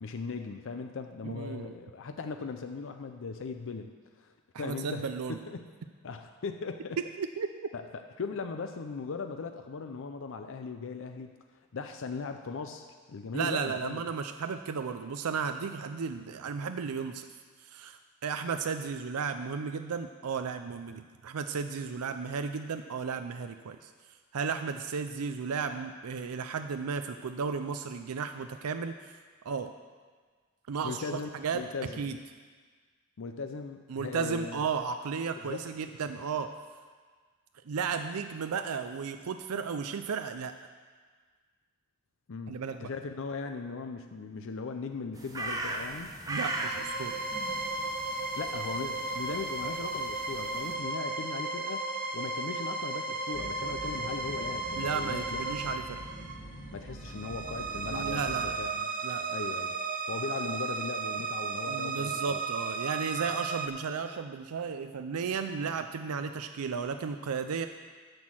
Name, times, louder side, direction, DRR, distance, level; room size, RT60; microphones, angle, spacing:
voice 1, 0.0-5.0 5.5-5.7 6.0-7.0 7.7-11.3 11.7-14.1 30.8-32.0 33.2-34.6 35.4-35.6 42.3-46.1 48.4-51.8 52.1-55.4 56.7-58.9 59.3-59.7 60.1-62.4, left 4 dB, 60° left, 6 dB, 0.5 m, -38 dB
voice 2, 1.2-1.7 4.5-5.4 7.2-7.7 13.3-17.3 17.6-23.9 24.3-29.1 29.4-29.7 30.7-31.6 32.0-32.2 33.9-36.5 37.6-40.5 42.5-42.9 46.3-47.2 54.8-56.0 57.9-58.6 59.0-59.3 61.7-67.7, right 5 dB, 90° right, 8 dB, 0.5 m, -34 dB
sound 1, 45.1-50.7, right 2 dB, 15° right, 1.0 m, -39 dB
sound 2, 46.3-63.7, right 3 dB, 40° right, 0.7 m, -35 dB
sound 3, 53.3-58.5, equal, 35° left, 1.8 m, -45 dB
9.8 x 6.3 x 7.6 m, 1.5 s
head